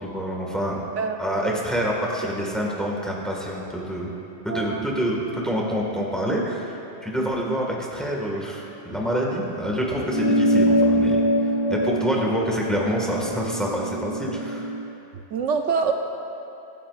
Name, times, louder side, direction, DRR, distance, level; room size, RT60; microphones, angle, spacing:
voice 1, 0.0-0.8 1.2-4.1 4.4-14.7, equal, ahead, -2 dB, 1.7 m, -27 dB
voice 2, 1.0-1.6 4.5-4.9 7.2-7.6 15.3-15.9, right 6 dB, 75° right, 4 dB, 1.0 m, -26 dB
sound 1, 10.0-14.8, right 1 dB, 55° left, 1.8 m, -23 dB
24.0 x 9.2 x 2.5 m, 2.9 s
omnidirectional pair, 1.3 m